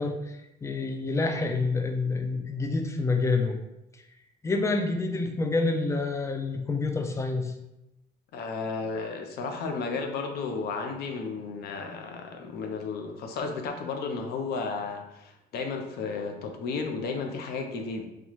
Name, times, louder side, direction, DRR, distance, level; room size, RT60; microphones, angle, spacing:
voice 1, 0.0-3.6 4.4-7.5, left 3 dB, 15° left, 5 dB, 0.4 m, -28 dB
voice 2, 8.3-18.0, left 4 dB, 70° left, 4 dB, 0.6 m, -33 dB
4.0 x 2.3 x 3.0 m, 0.89 s
cardioid pair, 110°, 17 cm